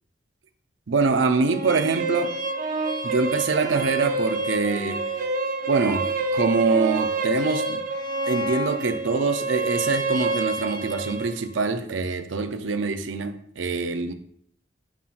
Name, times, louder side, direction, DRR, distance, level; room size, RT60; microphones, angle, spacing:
voice 1, 0.9-2.3 3.0-5.0 5.7-7.8 8.3-14.1, right 4 dB, 85° right, 7 dB, 0.6 m, -24 dB
sound 1, 1.4-11.3, right 2 dB, 45° right, 0.6 m, -28 dB
7.2 x 5.6 x 2.5 m, 0.64 s
head